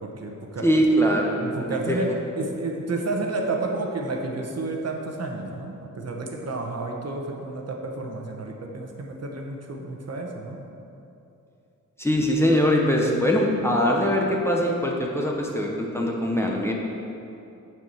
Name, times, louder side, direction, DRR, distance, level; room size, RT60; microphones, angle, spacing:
voice 1, 0.0-0.7 1.4-10.6, right 2 dB, 55° right, 1 dB, 1.0 m, -31 dB
voice 2, 0.6-2.0 12.0-16.7, equal, 10° left, -1 dB, 0.8 m, -22 dB
9.3 x 4.6 x 7.0 m, 2.8 s
wide cardioid pair, 165°, 31 cm